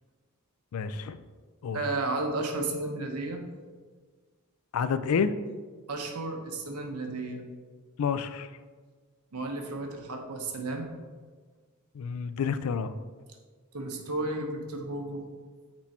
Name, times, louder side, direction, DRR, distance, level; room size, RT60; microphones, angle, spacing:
voice 1, 0.7-1.2 1.6-1.8 4.7-5.3 8.0-8.5 11.9-12.9, left 6 dB, 70° left, 13 dB, 0.4 m, -29 dB
voice 2, 1.7-3.4 5.9-7.4 9.3-10.9 13.7-15.2, right 2 dB, 85° right, 3 dB, 0.9 m, -33 dB
6.1 x 4.4 x 4.3 m, 1.5 s
head